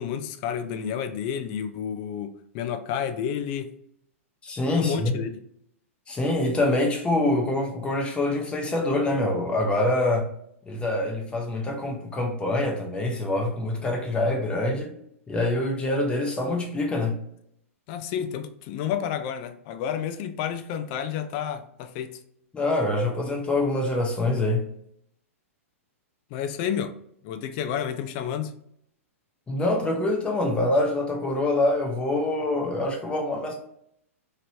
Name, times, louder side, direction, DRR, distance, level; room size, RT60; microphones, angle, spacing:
voice 1, 0.0-3.7 4.7-5.4 17.9-22.2 26.3-26.9 27.2-28.5, left 8 dB, 40° left, 0.4 m, -30 dB
voice 2, 4.4-5.2 6.1-10.3 10.7-14.9 15.3-17.2 22.5-24.6 29.5-33.5, left 2 dB, 15° left, 0.8 m, -25 dB
2.9 x 2.9 x 2.7 m
hypercardioid pair, 120°, 8 cm